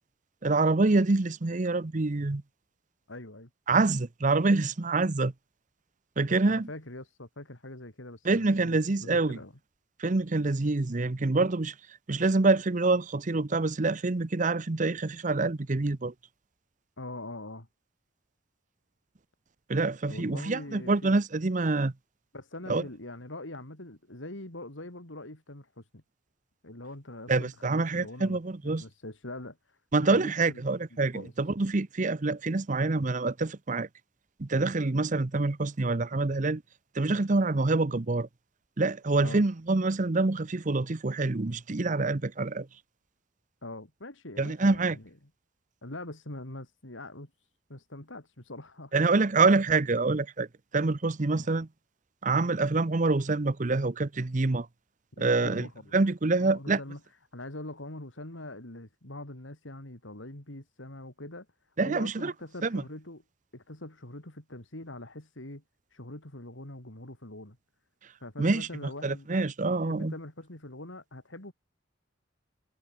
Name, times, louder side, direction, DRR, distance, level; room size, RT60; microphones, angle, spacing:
voice 1, 0.4-2.4 3.7-5.3 6.2-6.7 8.2-9.4 10.0-11.7 12.1-16.1 19.7-21.9 22.7-22.8 27.3-28.8 29.9-33.9 34.4-36.6 36.9-38.3 38.8-42.7 44.4-45.0 48.9-50.5 50.7-51.7 52.2-54.7 55.2-56.8 61.8-62.3 62.6-62.8 68.4-68.7 69.0-70.1, right 3 dB, 40° right, 0.8 m, -26 dB
voice 2, 3.1-3.5 6.4-9.5 17.0-17.7 20.1-21.2 22.3-26.0 26.6-30.6 30.9-31.3 39.2-39.4 43.6-45.1 45.8-47.3 47.7-48.9 51.3-51.5 55.1-55.9 56.3-57.0 57.3-61.5 61.8-63.2 63.5-65.6 65.9-67.6 68.2-69.3 69.7-71.5, left 1 dB, 80° left, 4.0 m, -43 dB
head